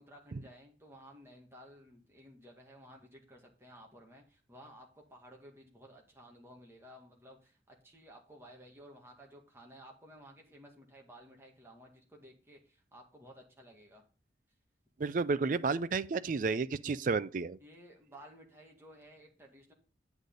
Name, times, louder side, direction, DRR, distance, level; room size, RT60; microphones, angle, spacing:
voice 1, 0.0-14.0 17.6-19.7, equal, 15° right, 1.9 m, -55 dB
voice 2, 15.0-17.6, right 4 dB, 45° right, 0.4 m, -31 dB
8.3 x 8.1 x 3.9 m
head